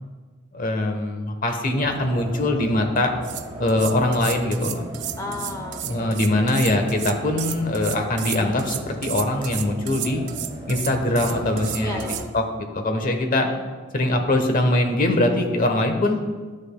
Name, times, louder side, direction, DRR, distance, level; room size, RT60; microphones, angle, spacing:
voice 1, 0.5-3.1 3.6-4.8 5.8-10.2 10.7-11.9 12.3-12.4 12.7-13.5 13.9-16.2, left 1 dB, 40° left, 5 dB, 1.0 m, -22 dB
sound 1, 1.8-12.2, equal, 25° right, 2.0 m, -38 dB
sound 2, 3.0-3.1 3.2-12.3, right 13 dB, 55° right, 0.4 m, -33 dB
voice 2, 5.2-6.5 11.8-12.3 13.4-13.6, left 1 dB, 15° left, 4 dB, 0.9 m, -35 dB
12.0 x 9.9 x 2.2 m, 1.4 s
head